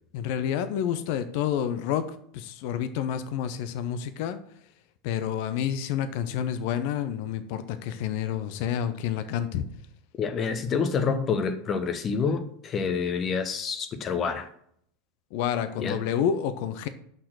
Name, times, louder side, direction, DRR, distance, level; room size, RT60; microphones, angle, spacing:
voice 1, 0.1-2.0 2.3-4.4 5.0-9.6 15.3-16.9, left 9 dB, 55° left, 11 dB, 0.7 m, -29 dB
voice 2, 10.2-14.5 15.8-16.0, left 5 dB, 30° left, 9 dB, 1.0 m, -27 dB
6.7 x 5.7 x 6.3 m, 0.67 s
figure-of-eight pair, 85°, 0 cm